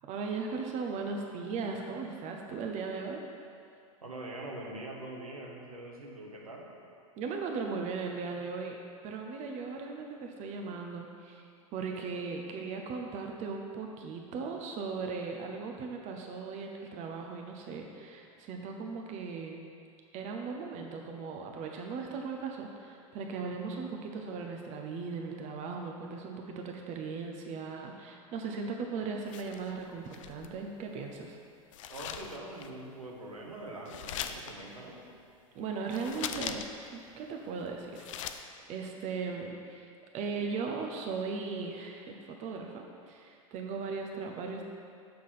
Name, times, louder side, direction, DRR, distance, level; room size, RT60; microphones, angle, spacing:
voice 1, 0.0-3.2 7.2-8.8 9.0-11.5 11.7-19.6 20.1-31.4 35.5-36.6 36.9-39.9 40.1-44.7, right 4 dB, 40° right, 2 dB, 0.8 m, -38 dB
voice 2, 4.0-6.7 31.9-35.0, right 2 dB, 90° right, -2 dB, 1.3 m, -43 dB
sound 1, 29.3-30.6 31.7-32.7 33.9-34.5 35.9-36.9 37.2-37.3 37.7-38.4, left 9 dB, 65° left, 0.5 m, -40 dB
6.6 x 5.9 x 5.6 m, 2.3 s
hypercardioid pair, 90°, 18 cm